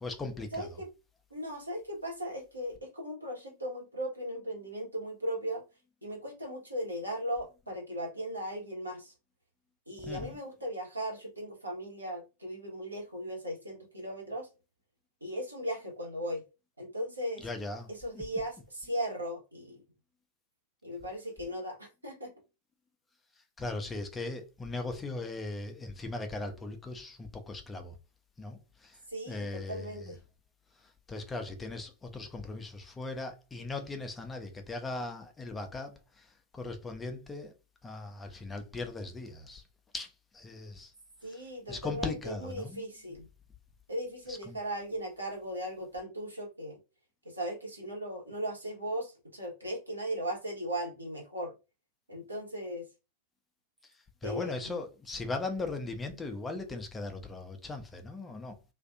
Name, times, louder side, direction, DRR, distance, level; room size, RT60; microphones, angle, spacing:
voice 1, 0.0-0.8 10.0-10.4 17.4-17.9 18.1-18.2 23.6-27.9 28.4-29.0 29.3-30.2 30.8-37.5 37.8-39.6 39.9-40.9 41.2-42.8 44.3-44.6 53.8-53.9 54.2-58.6, left 3 dB, 15° left, 0.5 m, -39 dB
voice 2, 0.5-0.9 1.3-5.6 6.0-9.1 9.9-14.5 15.2-16.4 16.8-17.5 17.9-19.8 20.8-22.3 29.1-30.2 41.2-43.3 43.9-46.8 47.2-51.5 52.1-52.9 54.2-54.6, equal, 85° right, 1.1 m, -37 dB
2.5 x 2.4 x 2.4 m
figure-of-eight pair, 90°, 0 cm